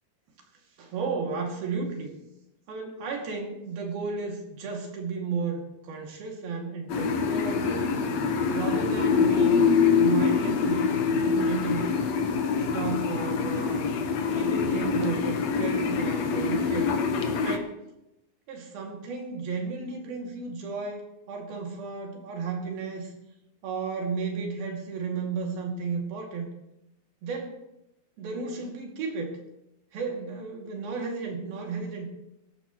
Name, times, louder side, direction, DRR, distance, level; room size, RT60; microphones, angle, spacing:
voice 1, 0.8-2.1 2.7-7.8 8.5-9.6 10.0-11.9 12.7-13.9 14.3-16.9 17.4-17.8 18.5-23.1 23.6-26.5 27.2-27.6 28.2-29.4 29.9-32.1, right 4 dB, 85° right, 0 dB, 4.2 m, -33 dB
sound 1, 6.9-17.6, left 5 dB, 65° left, 1.9 m, -25 dB
23.5 x 12.0 x 3.0 m, 0.89 s
omnidirectional pair, 4.2 m